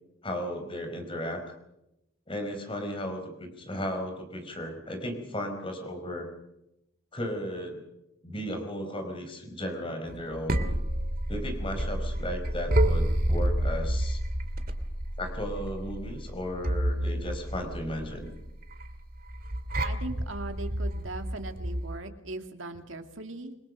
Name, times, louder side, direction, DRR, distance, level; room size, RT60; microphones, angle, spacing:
voice 1, 0.2-1.4 2.3-6.3 7.1-7.8 8.2-10.6 11.3-14.2 15.2-18.3, equal, 25° left, 5 dB, 4.5 m, -35 dB
sound 1, 10.1-22.0, right 1 dB, 45° right, 2.1 m, -29 dB
voice 2, 19.8-23.6, right 2 dB, 70° right, 5 dB, 2.5 m, -39 dB
27.5 x 21.5 x 6.4 m, 0.87 s
head